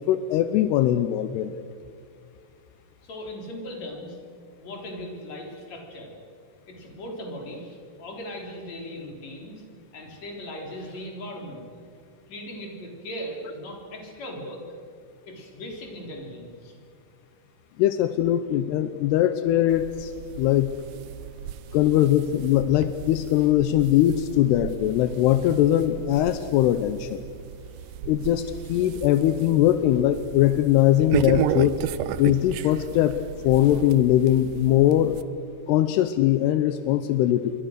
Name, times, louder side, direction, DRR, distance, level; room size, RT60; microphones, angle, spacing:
voice 1, 0.0-1.7 17.8-20.1 20.4-20.8 21.7-27.2 28.1-31.9 32.2-33.2 33.4-35.2 35.7-37.5, left 12 dB, 85° left, 11 dB, 2.8 m, -21 dB
voice 2, 3.0-4.2 4.6-6.1 6.7-9.6 9.9-11.6 12.3-14.6 15.3-16.8 27.6-27.9, equal, 45° left, 1 dB, 4.8 m, -38 dB
sound 1, 19.7-35.2, right 10 dB, 80° right, 2.0 m, -34 dB
27.5 x 23.5 x 6.7 m, 2.2 s
omnidirectional pair, 4.7 m